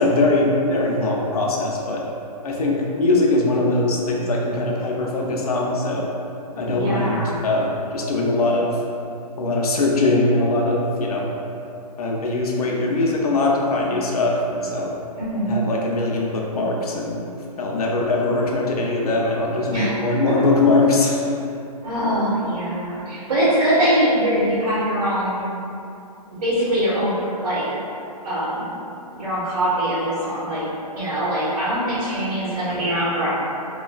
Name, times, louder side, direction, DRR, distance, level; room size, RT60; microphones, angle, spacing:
voice 1, 0.0-2.0 2.4-6.1 6.5-8.8 9.4-11.3 12.0-14.9 15.5-17.2 17.6-21.3, left 2 dB, 70° left, -2 dB, 0.5 m, -21 dB
voice 2, 6.5-7.4 15.2-15.6 19.7-20.0 21.8-25.5 26.4-27.6 28.2-28.7 29.1-30.6 30.9-33.3, right 1 dB, 65° right, -10 dB, 1.3 m, -22 dB
3.1 x 2.3 x 2.3 m, 2.6 s
hypercardioid pair, 165°, 20 cm